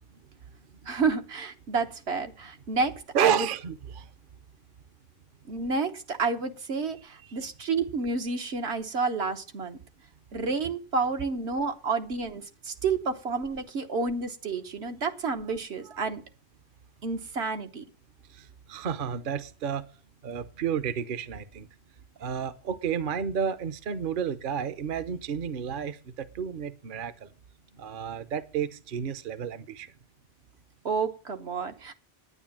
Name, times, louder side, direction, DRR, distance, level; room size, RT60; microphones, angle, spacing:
voice 1, 0.9-3.5 5.5-9.8 10.3-16.2 17.0-17.8 30.8-31.9, right 4 dB, 80° right, 1.4 m, -30 dB
voice 2, 3.1-4.1 7.2-7.3 15.9-16.0 18.3-19.9 20.2-21.7 22.2-27.3 27.7-29.9, right 8 dB, 55° right, 0.9 m, -31 dB
9.8 x 9.5 x 7.2 m
omnidirectional pair, 1.1 m